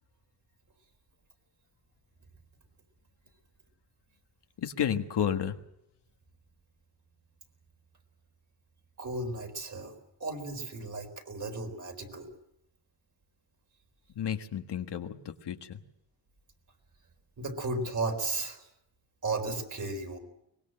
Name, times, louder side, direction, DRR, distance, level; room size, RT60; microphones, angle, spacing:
voice 1, 4.6-5.6 14.1-15.8, left 9 dB, 60° left, 6 dB, 1.6 m, -32 dB
voice 2, 9.0-9.9 10.2-12.3 17.4-18.6 19.2-20.2, right 2 dB, 40° right, 4 dB, 4.2 m, -34 dB
23.5 x 20.5 x 7.7 m, 0.82 s
cardioid pair, 120°, 46 cm